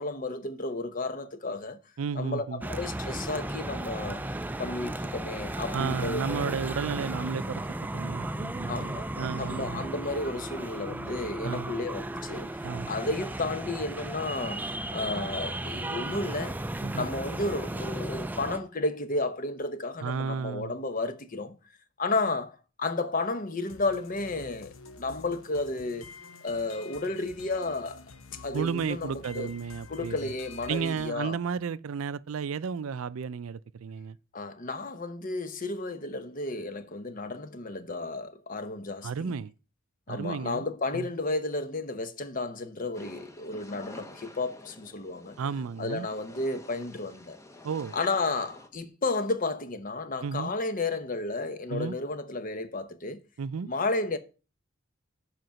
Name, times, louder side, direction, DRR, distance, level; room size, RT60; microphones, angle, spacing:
voice 1, 0.0-1.8 2.1-4.2 4.6-6.6 8.7-9.1 9.4-16.6 16.9-21.6 22.0-26.1 26.4-28.0 28.4-29.5 29.9-31.4 34.3-39.4 40.1-45.4 45.8-47.4 47.9-53.2 53.6-54.2, left 2 dB, 40° left, 0.9 m, -32 dB
voice 2, 2.0-2.6 5.7-7.6 7.9-9.8 11.4-11.7 12.6-12.9 16.8-17.1 20.0-20.7 28.5-30.3 30.7-34.2 39.0-39.5 40.1-40.6 40.9-41.1 45.4-46.1 47.6-47.9 50.2-50.5 51.7-51.9 53.4-53.7, right 6 dB, 85° right, 0.4 m, -33 dB
sound 1, 2.6-18.6, right 1 dB, 10° right, 0.4 m, -35 dB
sound 2, 23.7-31.1, left 4 dB, 80° left, 0.9 m, -48 dB
sound 3, 42.9-48.7, left 1 dB, 15° left, 0.8 m, -49 dB
7.9 x 5.2 x 5.7 m
head